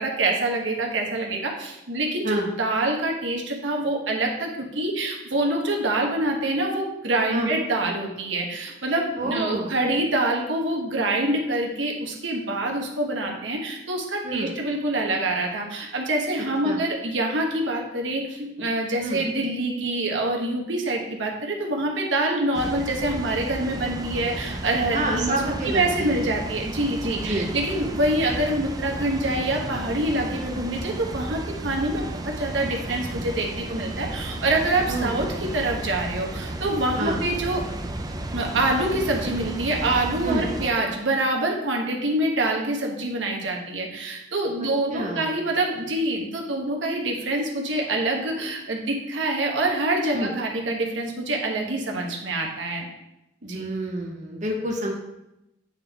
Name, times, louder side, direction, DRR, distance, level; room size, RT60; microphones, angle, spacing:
voice 1, 0.0-37.6 38.3-52.9 53.4-53.7, right 2 dB, 85° right, 0 dB, 1.1 m, -26 dB
voice 2, 9.2-9.7 14.2-14.5 16.6-16.8 19.0-19.2 24.9-26.1 27.2-27.5 34.9-35.2 37.0-37.2 40.2-40.4 44.9-45.3 50.1-50.3 53.5-54.9, right 1 dB, 40° right, -1 dB, 0.9 m, -28 dB
Water, 22.5-40.7, right 1 dB, 20° right, 0.5 m, -33 dB
8.9 x 3.7 x 3.5 m, 0.89 s
head